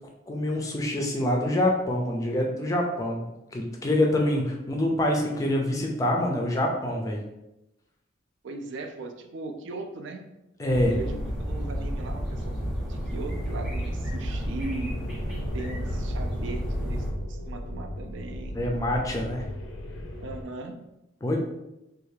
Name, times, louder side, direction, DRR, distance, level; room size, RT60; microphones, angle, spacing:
voice 1, 0.3-3.2 3.5-7.2 10.6-10.9 18.6-19.4 21.2-21.4, left 1 dB, 15° left, 0 dB, 0.4 m, -25 dB
voice 2, 8.4-10.2 10.8-15.2 15.5-18.6 20.2-20.9, right 3 dB, 65° right, 5 dB, 0.4 m, -38 dB
sound 1, 10.7-17.1, equal, ahead, 0.7 m, -31 dB
sound 2, 14.9-20.4, left 1 dB, 85° left, 0.5 m, -37 dB
3.3 x 2.4 x 3.2 m, 0.93 s
head